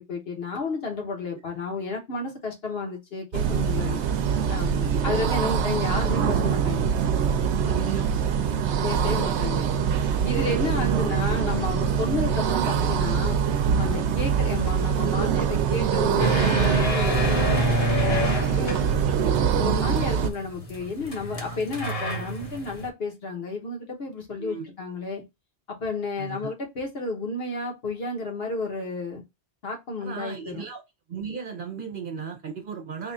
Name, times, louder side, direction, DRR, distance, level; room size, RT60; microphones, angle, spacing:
voice 1, 0.0-4.0 4.5-6.9 8.8-9.7 10.2-13.4 13.8-18.8 19.6-25.2 25.7-29.2 29.6-30.6, left 3 dB, 65° left, 1.3 m, -32 dB
sound 1, 3.3-20.3, right 7 dB, 90° right, 0.9 m, -24 dB
voice 2, 7.6-8.1 10.6-10.7 14.2-14.3 19.1-19.3 21.5-21.6 24.4-24.7 26.2-26.5 30.0-30.8 31.1-33.1, right 6 dB, 55° right, 0.8 m, -35 dB
sound 2, 16.2-22.9, equal, 35° left, 0.9 m, -28 dB
3.5 x 2.4 x 4.1 m
omnidirectional pair, 1.1 m